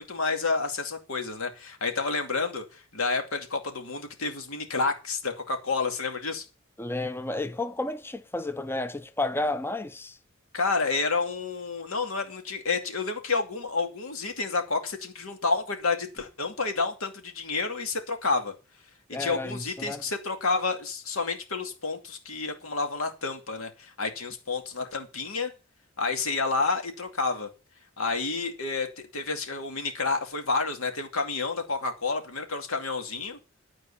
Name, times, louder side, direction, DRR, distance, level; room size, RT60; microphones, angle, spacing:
voice 1, 0.0-6.4 10.5-18.5 19.2-25.5 26.0-27.5 28.0-33.4, left 4 dB, 80° left, 2.4 m, -29 dB
voice 2, 6.8-10.2 19.1-20.0, left 2 dB, 10° left, 0.6 m, -31 dB
12.5 x 4.7 x 8.5 m
head